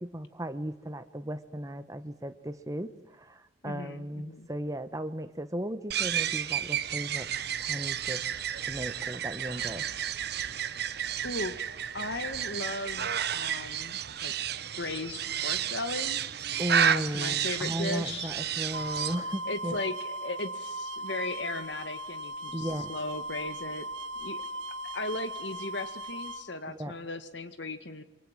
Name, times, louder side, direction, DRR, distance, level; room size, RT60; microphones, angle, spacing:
voice 1, 0.0-7.3 7.6-8.2 8.6-9.9 16.6-19.8 22.5-22.9 26.7-26.9, right 1 dB, 20° right, 9 dB, 1.3 m, -36 dB
voice 2, 3.6-4.5 11.2-14.3 14.8-16.2 16.9-18.3 19.5-23.9 24.2-24.4 24.9-28.0, left 2 dB, 70° left, 10 dB, 2.0 m, -37 dB
sound 1, 5.9-19.2, right 9 dB, 60° right, 1.0 m, -31 dB
sound 2, 18.7-26.4, right 1 dB, 85° right, 1.5 m, -38 dB
28.0 x 23.5 x 7.6 m, 0.92 s
head